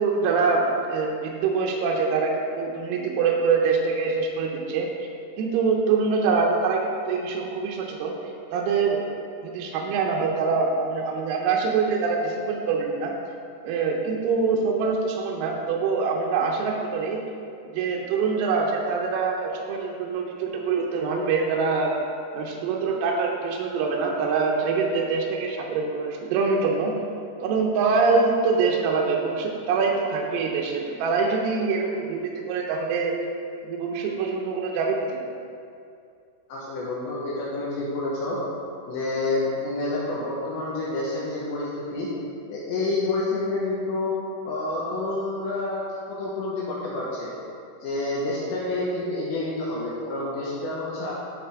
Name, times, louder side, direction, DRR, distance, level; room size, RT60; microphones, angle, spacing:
voice 1, 0.0-4.9 5.4-8.1 8.5-9.0 9.4-13.1 13.6-17.2 17.7-21.9 22.3-26.9 27.4-33.2 33.6-35.2, right 4 dB, 90° right, -1 dB, 3.5 m, -24 dB
voice 2, 36.5-38.4 38.9-42.1 42.5-44.1 44.4-45.8 46.1-47.3 47.8-51.1, left 2 dB, 75° left, -6 dB, 2.9 m, -28 dB
11.0 x 4.8 x 3.5 m, 2.4 s
omnidirectional pair, 6.0 m